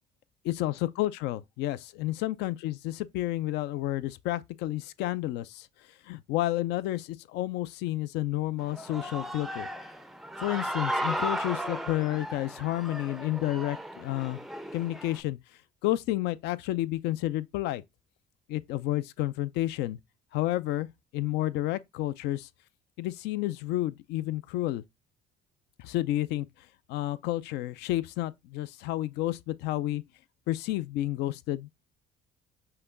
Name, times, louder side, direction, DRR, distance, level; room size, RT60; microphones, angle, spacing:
voice 1, 0.5-5.7 6.1-9.7 10.4-14.4 14.7-15.4 15.8-17.8 18.5-20.0 20.3-22.5 23.0-24.8 25.8-26.5 26.9-30.0 30.5-31.7, left 15 dB, 90° left, 0.4 m, -30 dB
Human voice / Cheering, 8.6-15.2, equal, ahead, 0.4 m, -35 dB
5.8 x 2.2 x 3.7 m
cardioid pair, 110°, 17 cm